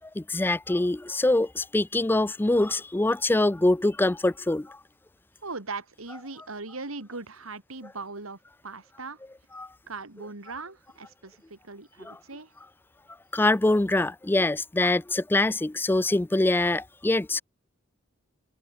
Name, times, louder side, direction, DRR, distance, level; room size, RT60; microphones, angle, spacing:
voice 1, 0.2-4.8 9.6-9.7 12.0-12.2 13.3-17.4, left 2 dB, 10° left, 0.3 m, -24 dB
voice 2, 5.4-9.2 9.9-12.5, right 3 dB, 80° right, 2.9 m, -39 dB
head